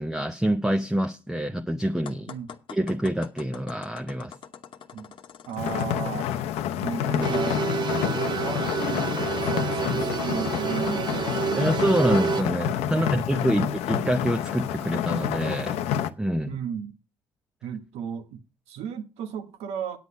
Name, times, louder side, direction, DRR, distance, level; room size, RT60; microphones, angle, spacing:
voice 1, 0.0-2.3 2.7-4.3 11.6-15.8 16.2-16.6, right 1 dB, 5° right, 0.7 m, -26 dB
sound 1, 2.1-6.3, left 8 dB, 55° left, 1.1 m, -45 dB
voice 2, 5.4-6.3 6.8-11.7 12.9-13.7 16.4-16.9 17.6-20.0, right 8 dB, 85° right, 1.4 m, -35 dB
sound 2, 5.6-16.1, left 9 dB, 85° left, 0.7 m, -28 dB
sound 3, 7.2-12.4, right 7 dB, 45° right, 0.5 m, -29 dB
9.3 x 8.3 x 5.4 m
cardioid pair, 95°, 10 cm